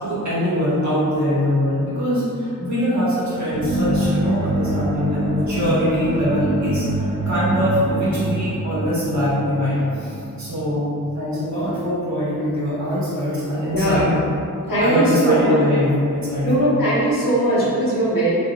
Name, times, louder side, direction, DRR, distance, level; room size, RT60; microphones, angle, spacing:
voice 1, 0.0-6.8 7.2-10.9 11.1-14.1 14.8-16.7, equal, 55° right, -11 dB, 1.3 m, -22 dB
sound 1, 3.5-11.3, right 1 dB, 15° right, 0.4 m, -25 dB
voice 2, 13.7-14.0 14.7-15.6 16.4-18.3, right 1 dB, 75° left, -9 dB, 1.2 m, -19 dB
3.7 x 2.9 x 2.4 m, 2.6 s
wide cardioid pair, 105°, 34 cm